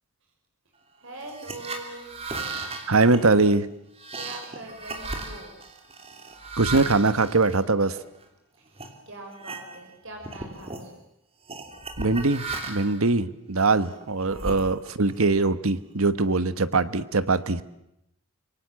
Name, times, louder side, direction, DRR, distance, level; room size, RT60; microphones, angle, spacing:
voice 1, 1.0-2.1 4.1-5.6 8.6-10.9 14.3-14.5, right 2 dB, 65° right, 2 dB, 5.5 m, -42 dB
sound 1, 1.2-8.2 8.7-8.9 9.3-10.0 10.2-10.9 11.5-13.0 13.6-15.1, right 3 dB, 30° right, 3.1 m, -36 dB
voice 2, 2.9-3.7 6.6-8.0 12.0-17.6, right 3 dB, 80° right, 13 dB, 1.3 m, -22 dB
26.5 x 24.0 x 7.6 m, 0.82 s
head